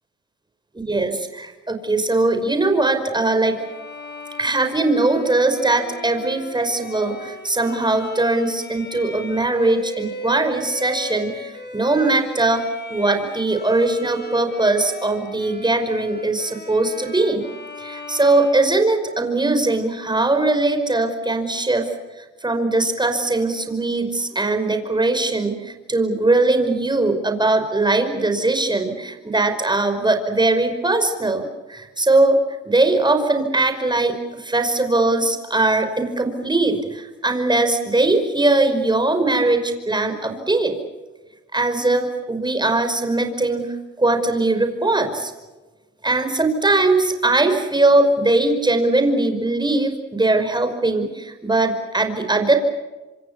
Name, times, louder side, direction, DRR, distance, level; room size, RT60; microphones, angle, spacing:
voice 1, 0.8-3.6 4.4-12.6 12.9-17.5 17.8-21.9 22.4-32.4 32.6-40.7 41.5-43.7 44.0-45.3 46.0-52.7, right 2 dB, 15° right, 6 dB, 5.5 m, -20 dB
Bowed string instrument, 3.5-19.4, equal, 30° left, 7.2 m, -37 dB
27.5 x 26.0 x 6.9 m, 1.2 s
hypercardioid pair, 60°, 32 cm